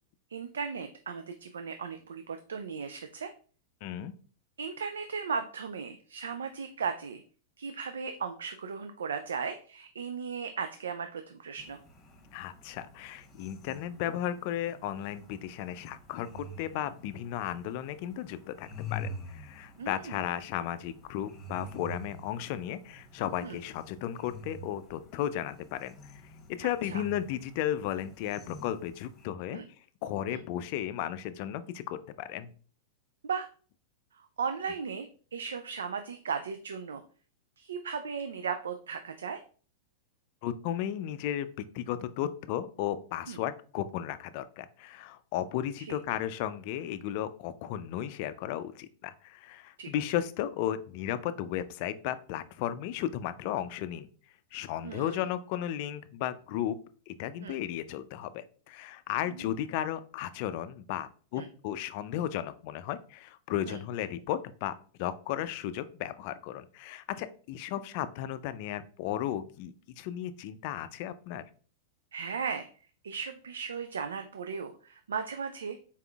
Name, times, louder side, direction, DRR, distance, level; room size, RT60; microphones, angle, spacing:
voice 1, 0.3-3.3 4.6-7.2 7.6-11.8 19.8-20.2 23.4-23.6 26.8-27.0 29.5-29.6 30.3-30.4 33.2-33.5 34.1-37.0 37.6-39.4 43.3-43.4 45.9-46.0 49.8-49.9 54.8-55.3 57.4-57.6 59.2-59.5 61.4-61.5 63.7-63.8 72.1-72.7 73.0-75.8, right 6 dB, 90° right, 8 dB, 0.3 m, -36 dB
voice 2, 3.8-4.1 12.3-26.0 26.5-29.6 30.0-32.5 40.4-41.5 41.7-54.1 54.5-56.8 57.1-71.4, left 11 dB, 55° left, 13 dB, 0.4 m, -34 dB
sound 1, 11.6-29.3, left 1 dB, 30° left, 1.0 m, -47 dB
4.2 x 3.7 x 2.3 m, 0.42 s
hypercardioid pair, 120°, 0 cm